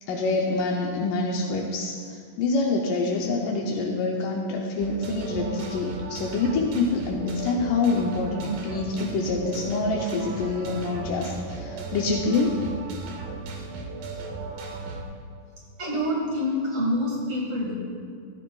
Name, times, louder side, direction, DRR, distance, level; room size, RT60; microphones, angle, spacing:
voice 1, 0.1-12.6, left 3 dB, 80° left, -1 dB, 2.3 m, -26 dB
sound 1, 4.8-15.0, right 3 dB, 80° right, 2.7 m, -36 dB
voice 2, 15.8-17.7, left 1 dB, 50° right, -4 dB, 2.6 m, -26 dB
14.5 x 13.5 x 2.3 m, 2.2 s
omnidirectional pair, 3.8 m